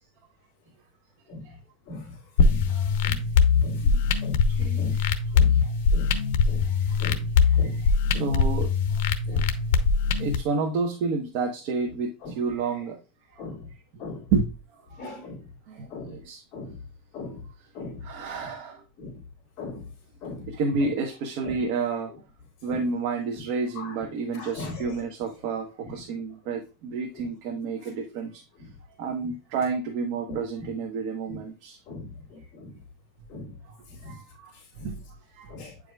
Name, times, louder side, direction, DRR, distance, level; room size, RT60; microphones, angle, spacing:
voice 1, 1.9-2.2 2.4-2.7 3.0-3.3 3.6-3.9 4.2-4.4 4.8-4.9 5.3-5.7 5.9-6.6 7.0-7.9 8.1-8.3 9.3-9.5 12.2-12.3 13.4-13.7 14.0-14.2 15.0-15.4 15.9-16.2 16.5-16.8 17.1-17.4 17.7-18.1 18.4-18.5 19.0-19.2 19.6-19.9 20.2-20.5 20.8-20.9 21.4-21.6 22.7-22.8 23.7-24.0 24.3-25.0 25.8-25.9 27.1-27.3 28.6-28.7 29.2-29.3 30.3-30.7 31.3-31.4 31.9-32.8 33.3-33.5 33.9-34.2 34.5-34.9 35.5-35.7, left 3 dB, 40° left, 2.4 m, -39 dB
sound 1, 2.4-10.4, left 5 dB, 75° left, 0.9 m, -22 dB
voice 2, 3.8-4.2 4.5-5.0 5.5-5.7 6.1-6.2 6.4-8.7 9.3-9.4 10.2-13.0 13.3-13.4 14.3-14.5 14.9-15.0 15.7-16.4 18.0-18.8 20.5-22.1 22.6-28.4 29.0-31.8 34.0-34.5 34.8-35.0 35.3-35.5, right 4 dB, 55° right, 1.1 m, -30 dB
8.8 x 4.9 x 2.3 m
supercardioid pair, 155°, 0 cm